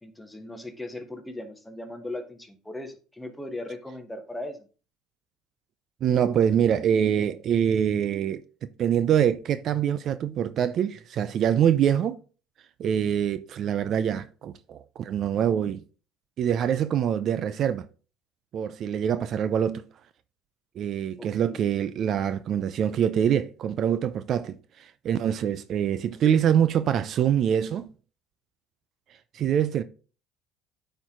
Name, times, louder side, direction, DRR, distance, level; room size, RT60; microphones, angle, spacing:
voice 1, 0.0-4.7 21.2-21.6, left 1 dB, 10° left, 1.3 m, -38 dB
voice 2, 6.0-8.4 8.8-12.2 12.8-15.8 16.4-17.9 18.5-19.8 20.8-27.9 29.3-29.8, right 9 dB, 50° right, 0.5 m, -24 dB
9.1 x 4.6 x 3.7 m
supercardioid pair, 100°, 0 cm